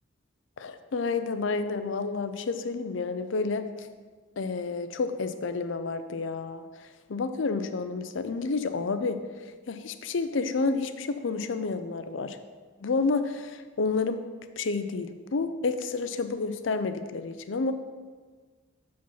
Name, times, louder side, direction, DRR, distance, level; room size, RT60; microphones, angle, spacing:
voice 1, 0.6-3.9 4.4-6.7 7.1-9.2 9.7-12.4 12.8-14.2 14.6-17.7, left 4 dB, 70° left, 10 dB, 0.5 m, -30 dB
7.2 x 5.1 x 5.5 m, 1.5 s
head